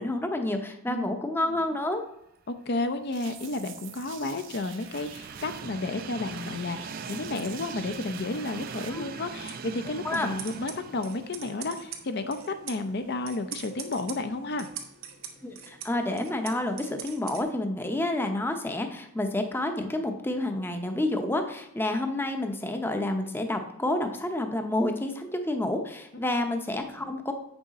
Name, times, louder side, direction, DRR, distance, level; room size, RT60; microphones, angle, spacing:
voice 1, 0.0-2.0 8.9-9.1 10.0-10.3 15.4-27.3, left 1 dB, 10° left, 5 dB, 0.7 m, -29 dB
voice 2, 2.5-14.7, left 2 dB, 50° left, 8 dB, 0.5 m, -32 dB
Train, 3.0-13.1 13.5-13.6 14.7-14.8, right 5 dB, 45° right, 0.4 m, -42 dB
sound 1, 3.1-8.9, right 8 dB, 60° right, 0.9 m, -46 dB
sound 2, 9.3-17.4, right 8 dB, 90° right, 1.3 m, -44 dB
8.4 x 6.3 x 4.0 m, 0.78 s
head